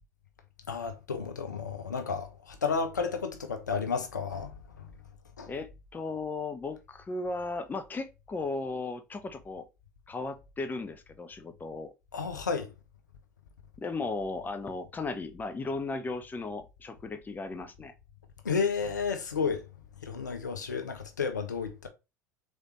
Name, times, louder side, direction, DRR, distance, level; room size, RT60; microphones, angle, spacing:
voice 1, 0.7-4.5 5.4-5.5 12.1-12.7 18.4-19.6 20.0-21.9, left 5 dB, 80° left, 0.7 m, -32 dB
voice 2, 5.5-9.7 10.1-11.9 13.8-17.9, left 3 dB, 20° left, 0.7 m, -36 dB
4.0 x 3.3 x 3.1 m
figure-of-eight pair, 70°, 9 cm